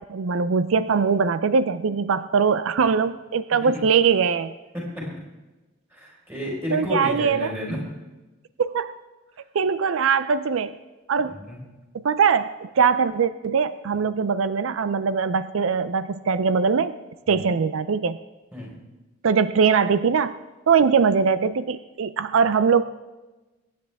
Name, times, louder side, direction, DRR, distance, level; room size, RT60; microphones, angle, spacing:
voice 1, 0.0-4.5 6.7-7.5 8.6-8.9 9.5-10.8 11.1-11.4 11.9-17.0 17.3-18.2 19.2-20.4 20.7-22.8, right 6 dB, 75° right, 13 dB, 0.4 m, -21 dB
voice 2, 4.7-5.1 5.9-7.8 11.3-11.6 17.3-17.4 18.5-18.7, left 1 dB, 10° right, -4 dB, 4.4 m, -31 dB
23.0 x 10.0 x 3.5 m, 1.1 s
head